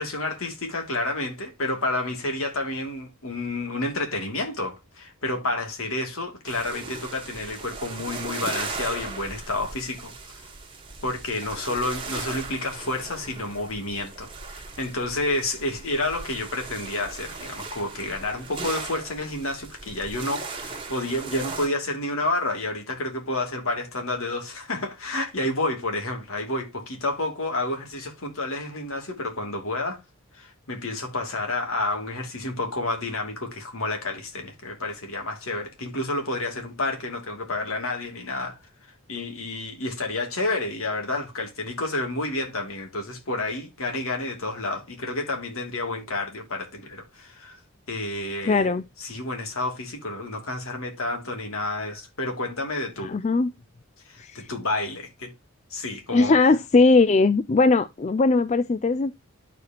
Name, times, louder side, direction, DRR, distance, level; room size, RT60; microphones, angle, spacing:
voice 1, 0.0-10.5 11.0-30.0 30.3-38.6 39.1-47.6 47.9-48.7 49.0-53.1 54.1-55.3 55.7-56.4, left 2 dB, 70° left, 2.8 m, -30 dB
sound 1, 6.4-21.7, right 4 dB, 25° right, 1.5 m, -38 dB
voice 2, 48.5-48.8 53.0-53.5 54.2-54.5 56.1-59.1, left 3 dB, 30° left, 0.4 m, -20 dB
12.0 x 4.8 x 2.9 m
head